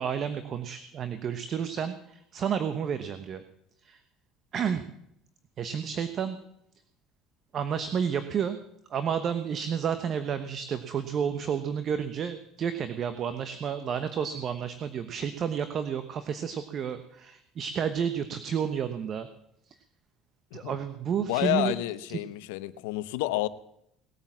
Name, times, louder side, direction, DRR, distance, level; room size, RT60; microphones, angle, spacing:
voice 1, 0.0-3.4 3.8-4.0 4.5-4.8 5.6-6.4 7.5-8.6 8.9-19.3 20.5-21.7 22.1-22.2, right 7 dB, 50° right, 10 dB, 1.1 m, -31 dB
voice 2, 21.2-23.5, left 17 dB, 85° left, 15 dB, 0.8 m, -29 dB
19.0 x 8.9 x 7.4 m, 0.76 s
supercardioid pair, 85°, 0 cm